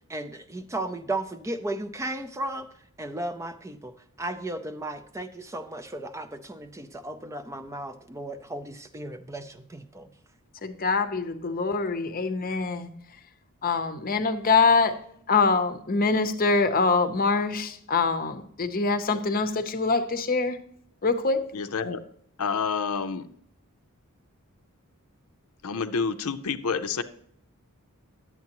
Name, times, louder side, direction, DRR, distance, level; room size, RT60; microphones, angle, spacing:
voice 1, 0.1-2.7 3.0-10.1, right 1 dB, 15° right, 0.4 m, -35 dB
voice 2, 10.6-12.9 13.6-15.0 15.3-20.6 21.0-21.4, left 4 dB, 40° left, 0.7 m, -24 dB
voice 3, 21.5-22.0 22.4-23.3 25.6-27.0, left 5 dB, 75° left, 0.6 m, -28 dB
10.5 x 8.3 x 2.9 m
head